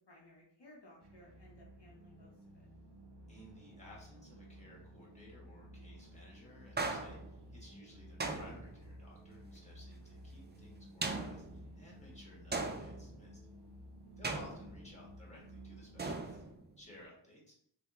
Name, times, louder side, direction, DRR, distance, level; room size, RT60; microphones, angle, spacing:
voice 1, 0.1-2.7 7.7-7.9 14.2-14.3, left 1 dB, 65° left, -4 dB, 0.7 m, -60 dB
sound 1, 1.0-16.4, equal, 60° right, 0.6 m, -54 dB
voice 2, 3.3-13.4 14.2-16.4 16.8-17.5, left 1 dB, 15° left, -4 dB, 1.3 m, -57 dB
sound 2, 6.8-7.5 8.2-9.0 11.0-11.8 12.5-13.3 14.2-15.1 16.0-16.8, right 3 dB, 25° right, 0.3 m, -39 dB
3.3 x 2.1 x 2.9 m, 0.67 s
wide cardioid pair, 40°, 45 cm